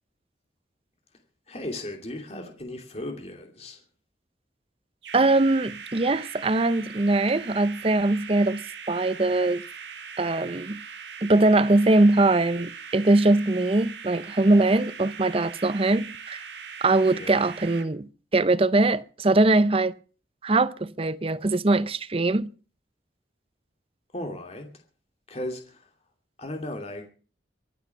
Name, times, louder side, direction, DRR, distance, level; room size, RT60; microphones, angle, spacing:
voice 1, 1.5-3.8 17.1-17.4 24.1-24.7 25.3-25.9 26.4-27.1, left 1 dB, 35° left, 2.7 m, -36 dB
sound 1, 5.0-17.9, right 6 dB, 80° right, 2.1 m, -41 dB
voice 2, 5.1-9.6 10.2-10.8 11.2-16.4 16.8-19.9 20.4-22.5, right 2 dB, 30° right, 0.7 m, -22 dB
24.0 x 8.4 x 5.8 m
head